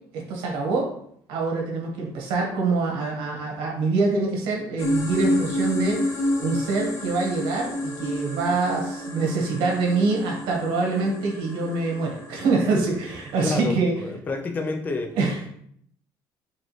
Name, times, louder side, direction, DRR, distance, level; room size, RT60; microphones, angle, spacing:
voice 1, 0.1-0.9 1.3-6.0 6.4-13.9 15.2-15.4, right 3 dB, 90° right, -1 dB, 1.4 m, -25 dB
sound 1, 4.8-13.5, left 1 dB, 40° left, 1.1 m, -30 dB
voice 2, 13.4-15.2, left 3 dB, 20° left, 4 dB, 0.4 m, -29 dB
4.8 x 3.1 x 3.1 m, 0.67 s
cardioid pair, 165°, 8 cm